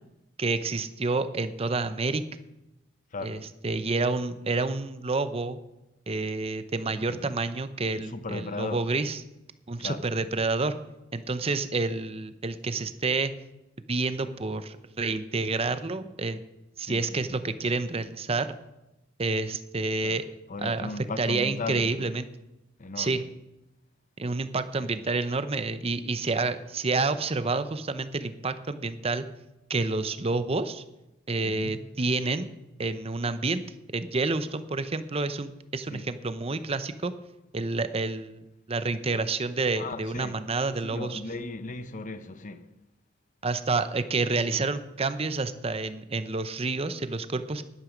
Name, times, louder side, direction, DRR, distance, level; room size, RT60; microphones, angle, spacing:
voice 1, 0.4-2.2 3.2-3.4 3.6-5.6 6.1-9.2 9.7-10.8 11.1-13.3 13.9-16.4 16.8-18.5 19.2-20.2 20.6-20.9 21.2-22.3 23.0-23.2 24.2-29.3 29.7-30.8 31.3-32.5 32.8-33.6 33.9-37.1 37.5-38.4 38.7-41.2 43.4-47.6, right 3 dB, 30° right, 0.7 m, -29 dB
voice 2, 3.1-3.4 6.9-7.4 7.9-8.9 9.8-10.1 16.8-17.4 20.0-20.2 20.5-22.1 22.8-23.3 24.8-24.9 31.4-31.9 35.9-36.1 39.8-40.4 40.8-42.7, left 3 dB, 40° left, 0.8 m, -37 dB
12.0 x 11.5 x 5.1 m
head